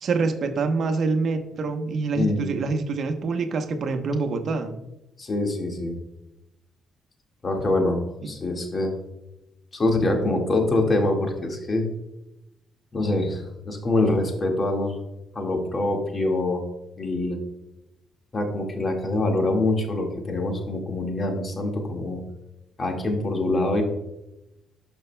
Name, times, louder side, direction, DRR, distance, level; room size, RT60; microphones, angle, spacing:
voice 1, 0.0-4.8 8.2-8.3, right 4 dB, 60° right, 7 dB, 0.9 m, -26 dB
voice 2, 2.1-2.7 5.2-6.0 7.4-8.9 9.7-11.9 12.9-15.0 15.3-16.6 17.0-17.4 18.3-22.2 22.8-23.8, left 2 dB, 35° left, 2 dB, 1.8 m, -25 dB
12.5 x 5.3 x 2.2 m, 0.90 s
cardioid pair, 90°, 0 cm